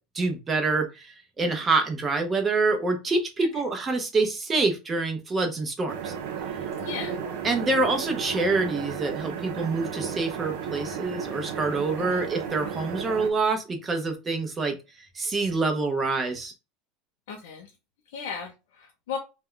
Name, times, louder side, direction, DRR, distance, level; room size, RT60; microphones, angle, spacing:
voice 1, 0.1-6.1 7.4-14.8 15.1-16.5, right 3 dB, 20° right, 5 dB, 0.6 m, -26 dB
sound 1, 5.9-13.3, right 7 dB, 75° right, 0.6 m, -34 dB
voice 2, 6.8-7.2 12.0-12.2 17.3-17.7 18.1-19.2, left 6 dB, 90° left, 1 dB, 0.6 m, -36 dB
2.2 x 2.1 x 3.6 m, 0.28 s
supercardioid pair, 135°, 0 cm